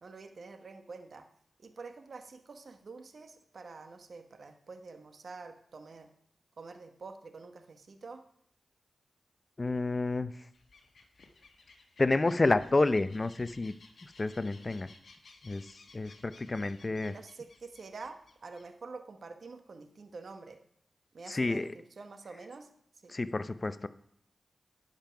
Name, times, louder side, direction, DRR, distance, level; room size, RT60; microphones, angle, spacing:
voice 1, 0.0-1.3 1.6-6.1 6.6-8.2 17.0-20.6 21.1-22.7 22.9-23.2, right 4 dB, 70° right, 7 dB, 1.0 m, -47 dB
voice 2, 9.6-10.3 12.0-13.7 14.0-14.9 15.4-15.7 15.9-17.1 21.3-21.7 23.1-23.9, left 2 dB, 40° left, 14 dB, 0.6 m, -29 dB
sound 1, 10.5-18.7, left 3 dB, 70° left, 1.3 m, -58 dB
10.5 x 5.4 x 5.8 m, 0.68 s
cardioid pair, 45°, 0 cm